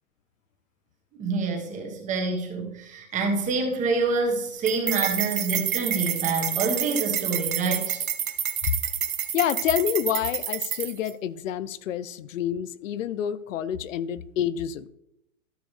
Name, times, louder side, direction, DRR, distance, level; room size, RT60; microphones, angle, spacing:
voice 1, 1.2-8.0, right 3 dB, 20° right, 2 dB, 1.4 m, -27 dB
sound 1, 4.7-11.1, right 9 dB, 90° right, 1.0 m, -29 dB
voice 2, 9.3-14.9, left 10 dB, 65° left, 17 dB, 0.6 m, -28 dB
13.0 x 6.1 x 3.2 m, 0.81 s
hypercardioid pair, 145°, 41 cm